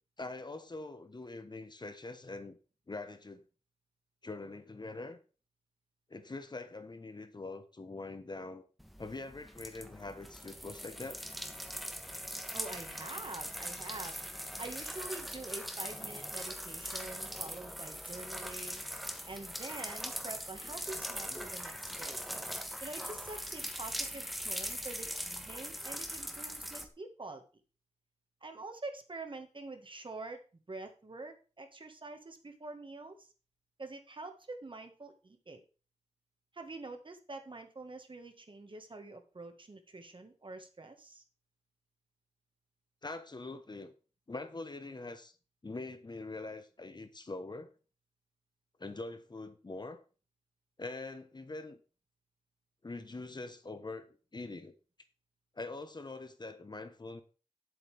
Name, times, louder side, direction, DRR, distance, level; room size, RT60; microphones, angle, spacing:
voice 1, 0.2-2.6 2.9-3.4 4.2-5.2 6.1-8.6 9.0-11.2 21.3-21.4 43.0-43.9 44.3-45.4 45.6-47.7 48.8-50.0 50.8-51.8 52.8-54.7 55.5-57.2, left 3 dB, 40° left, 9 dB, 1.0 m, -43 dB
sound 1, 8.8-26.8, equal, ahead, 1.2 m, -41 dB
voice 2, 12.5-18.8 19.3-22.2 22.8-27.4 28.4-30.4 30.7-33.3 33.8-35.6 36.5-41.2, right 2 dB, 45° right, 5 dB, 1.6 m, -46 dB
9.7 x 8.0 x 3.4 m, 0.35 s
wide cardioid pair, 80°, 12 cm